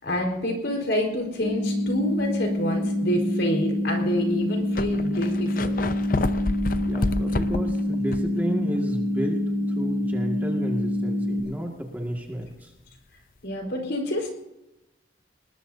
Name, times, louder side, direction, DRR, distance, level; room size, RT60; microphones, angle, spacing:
voice 1, 0.0-5.9 13.4-14.3, left 1 dB, 70° left, 1 dB, 4.5 m, -28 dB
sound 1, 1.4-11.4, left 1 dB, 85° left, 3.7 m, -26 dB
sound 2, 2.2-2.5 3.1-3.2 4.2-4.3 4.4-8.4 8.8-8.9 12.4-12.5, left 2 dB, 45° left, 0.6 m, -29 dB
voice 2, 6.8-12.7, equal, 10° right, 0 dB, 2.0 m, -32 dB
20.5 x 20.5 x 2.8 m, 0.95 s
head